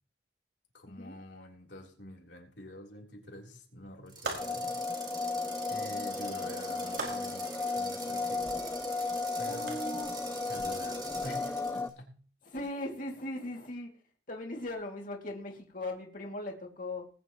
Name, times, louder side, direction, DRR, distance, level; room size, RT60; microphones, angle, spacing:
voice 1, 0.7-4.8 5.0-5.2 5.7-8.8 9.4-9.7 10.5-12.2, left 1 dB, 90° left, 0 dB, 3.7 m, -47 dB
sound 1, 4.1-11.9, right 4 dB, 25° right, 3.4 m, -45 dB
sound 2, 4.2-4.8 7.0-7.5 9.7-9.8, right 3 dB, 80° right, 5.4 m, -38 dB
sound 3, 4.4-11.9, left 3 dB, 15° left, 0.6 m, -35 dB
voice 2, 9.4-10.5 12.4-13.9 14.3-17.1, left 1 dB, 50° left, 1 dB, 2.5 m, -39 dB
20.5 x 10.0 x 3.1 m, 0.43 s
head